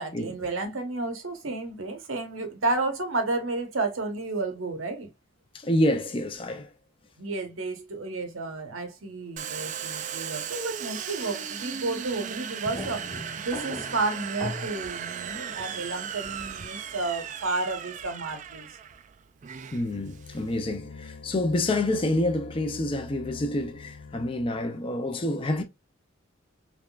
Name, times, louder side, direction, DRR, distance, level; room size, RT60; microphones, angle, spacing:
voice 1, 0.0-5.1 7.2-18.8, right 3 dB, 85° right, 1.0 m, -31 dB
voice 2, 5.5-6.7 19.7-25.6, left 1 dB, 25° left, 0.5 m, -27 dB
Domestic sounds home sounds, 9.4-20.7, right 8 dB, 40° right, 0.3 m, -37 dB
sound 1, 12.6-14.7, left 1 dB, 10° left, 1.2 m, -38 dB
sound 2, 19.7-24.8, left 4 dB, 85° left, 0.4 m, -45 dB
3.5 x 3.0 x 2.3 m
head